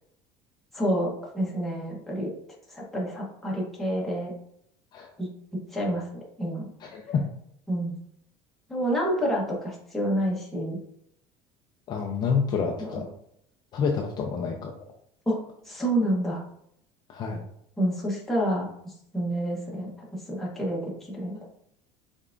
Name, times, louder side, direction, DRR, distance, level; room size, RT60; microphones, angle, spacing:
voice 1, 0.7-2.3 2.7-4.3 5.2-5.3 5.7-6.0 6.4-6.7 7.7-8.0 8.7-10.8 12.8-13.0 15.3-16.4 17.8-21.4, equal, ahead, -5 dB, 1.0 m, -28 dB
voice 2, 6.8-7.2 11.9-13.1 13.7-14.7 17.1-17.4, left 5 dB, 30° left, 1 dB, 0.4 m, -28 dB
5.5 x 3.5 x 2.5 m, 0.73 s
cardioid pair, 175°, 13 cm